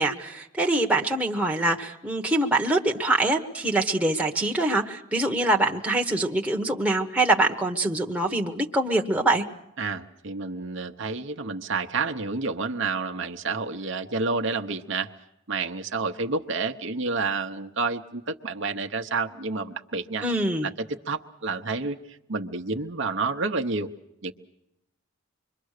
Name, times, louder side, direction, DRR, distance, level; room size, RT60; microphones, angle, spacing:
voice 1, 0.0-9.4 20.2-20.7, right 2 dB, 5° right, 1 dB, 1.1 m, -24 dB
voice 2, 9.8-15.1 15.5-20.3 20.6-20.7 21.1-22.0 22.3-23.9 24.2-24.3, right 4 dB, 55° right, 5 dB, 0.9 m, -29 dB
26.0 x 23.0 x 6.6 m, 0.85 s
head